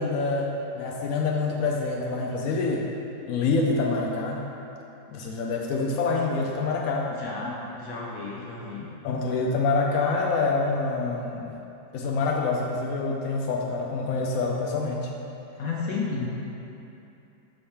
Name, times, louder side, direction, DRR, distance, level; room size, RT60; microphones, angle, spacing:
voice 1, 0.0-2.8 3.3-4.5 5.1-7.1 9.0-11.5 11.9-15.1, left 3 dB, 85° left, -1 dB, 0.7 m, -26 dB
voice 2, 7.2-8.9 15.6-16.3, left 4 dB, 60° left, -4 dB, 1.0 m, -32 dB
6.2 x 3.3 x 5.7 m, 2.9 s
omnidirectional pair, 2.0 m